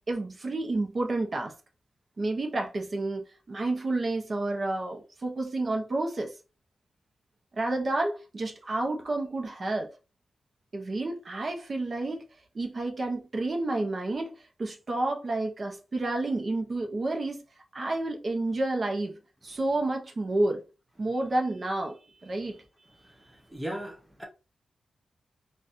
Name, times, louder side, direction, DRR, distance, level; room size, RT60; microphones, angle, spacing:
voice 1, 0.1-1.5 2.2-6.3 7.5-9.9 10.7-12.2 12.5-14.3 14.6-17.4 17.7-19.2 19.4-20.6 21.0-22.6, right 2 dB, 35° right, 0.7 m, -30 dB
voice 2, 23.5-24.2, right 1 dB, 5° right, 0.5 m, -36 dB
3.9 x 2.3 x 2.5 m
wide cardioid pair, 135°, 0 cm